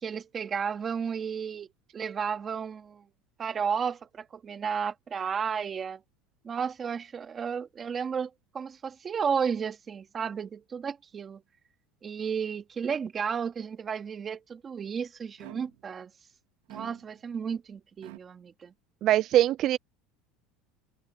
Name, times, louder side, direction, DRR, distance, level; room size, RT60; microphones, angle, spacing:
voice 1, 0.0-3.0 3.4-6.0 6.4-8.3 8.5-11.4 12.0-16.1 16.7-18.7, right 6 dB, 25° right, 2.4 m, -33 dB
sound 1, 15.4-16.0 16.7-17.4 18.0-18.2, right 22 dB, 85° right, 3.7 m, -47 dB
voice 2, 19.0-19.8, right 13 dB, 40° right, 0.4 m, -22 dB
open air
cardioid pair, 150°, 0 cm